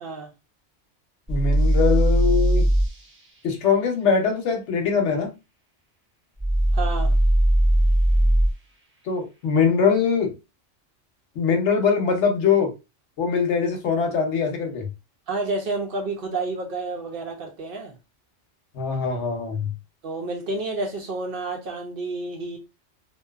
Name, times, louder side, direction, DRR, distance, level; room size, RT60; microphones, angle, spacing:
voice 1, 0.0-0.3 6.7-7.1 15.3-17.9 20.0-22.6, right 3 dB, 60° right, 0.7 m, -30 dB
voice 2, 1.3-2.7 3.4-5.3 9.1-10.3 11.4-12.7 13.2-14.9 18.7-19.7, left 5 dB, 75° left, 1.0 m, -22 dB
sound 1, 1.3-2.9 6.4-8.5, right 1 dB, 20° right, 0.4 m, -19 dB
2.6 x 2.2 x 2.3 m
omnidirectional pair, 1.2 m